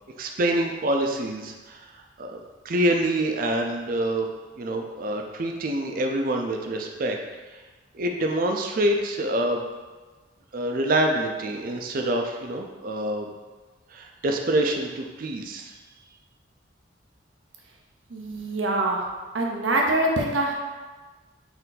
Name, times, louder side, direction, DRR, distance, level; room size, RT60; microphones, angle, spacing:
voice 1, 0.2-1.9 2.2-4.3 4.6-7.2 7.9-9.6 10.5-13.3 13.9-15.7, right 1 dB, 50° right, 3 dB, 0.4 m, -26 dB
voice 2, 18.1-19.0 19.3-20.5, right 2 dB, 85° right, 0 dB, 0.7 m, -24 dB
4.4 x 2.7 x 3.9 m, 1.3 s
head